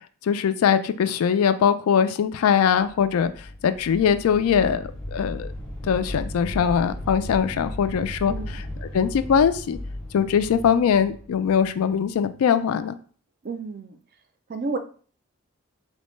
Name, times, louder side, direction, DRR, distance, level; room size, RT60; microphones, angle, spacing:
voice 1, 0.2-3.3 3.6-5.5 5.8-8.3 8.9-9.8 10.1-13.0, left 7 dB, 80° left, 11 dB, 0.3 m, -21 dB
sound 1, 2.7-12.4, left 1 dB, 5° left, 0.6 m, -36 dB
voice 2, 8.3-8.6 13.4-14.0 14.5-14.8, right 3 dB, 45° right, 7 dB, 0.4 m, -31 dB
4.1 x 2.1 x 3.0 m, 0.43 s
head